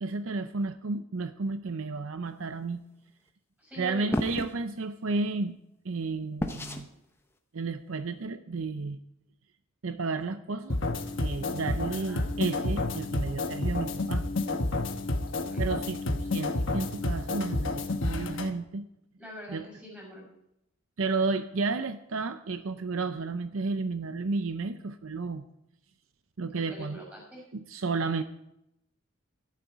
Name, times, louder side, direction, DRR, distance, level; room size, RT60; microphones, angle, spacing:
voice 1, 0.0-2.8 3.8-5.6 5.8-6.9 7.5-9.0 9.8-10.8 11.2-14.2 15.6-18.8 19.5-19.6 21.0-25.5 26.4-27.0 27.5-28.2, right 3 dB, 70° right, 10 dB, 0.6 m, -32 dB
voice 2, 3.6-4.2 11.9-12.3 15.3-15.7 19.2-20.3 26.5-27.4, equal, 5° right, -3 dB, 6.8 m, -44 dB
sound 1, 4.1-4.5 6.4-6.9, left 1 dB, 10° left, 0.9 m, -30 dB
sound 2, 10.7-18.5, left 2 dB, 60° left, 1.1 m, -30 dB
13.5 x 12.0 x 4.7 m, 0.81 s
head